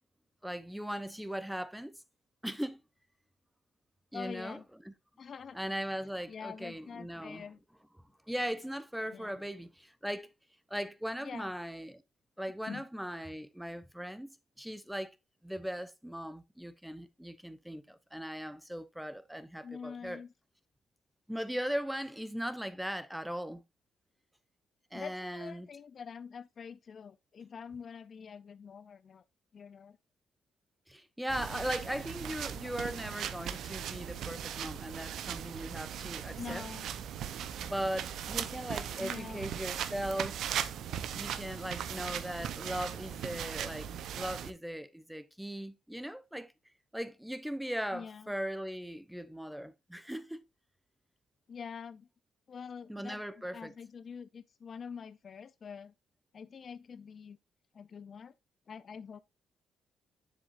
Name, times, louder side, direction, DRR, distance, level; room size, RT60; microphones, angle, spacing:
voice 1, 0.4-1.9 2.4-2.8 4.1-4.6 4.8-4.9 5.5-7.4 8.3-10.3 10.7-12.0 12.4-14.3 14.6-15.2 15.4-20.2 21.3-23.6 24.9-25.7 30.9-36.6 37.6-40.4 41.1-43.9 44.2-46.5 46.9-50.4 52.9-53.7, equal, 5° right, 0.8 m, -38 dB
voice 2, 4.1-4.6 5.2-5.6 6.3-7.6 9.1-9.4 11.2-11.5 12.7-12.9 19.6-20.3 24.9-29.2 29.5-30.0 36.4-36.9 39.0-39.5 47.9-48.3 51.5-52.1 52.5-55.9 56.3-57.4 57.7-58.3 58.7-59.2, left 6 dB, 50° left, 0.4 m, -45 dB
sound 1, 31.3-44.5, right 9 dB, 75° right, 0.7 m, -38 dB
7.3 x 7.2 x 2.5 m
cardioid pair, 90°, 0 cm